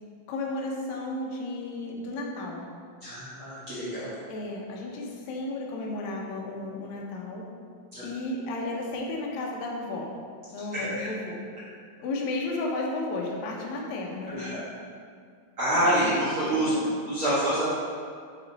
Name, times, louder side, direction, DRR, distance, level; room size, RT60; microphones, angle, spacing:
voice 1, 0.3-2.7 4.3-7.4 8.0-10.1 10.5-11.4 12.0-14.7 15.9-16.1 16.5-17.0, left 2 dB, 70° left, -2 dB, 1.8 m, -33 dB
voice 2, 3.0-4.1 7.9-8.1 10.7-11.1 14.3-14.6 15.6-16.7 17.0-17.7, right 1 dB, 50° right, -12 dB, 1.7 m, -27 dB
8.2 x 3.7 x 4.1 m, 2.1 s
omnidirectional pair, 4.0 m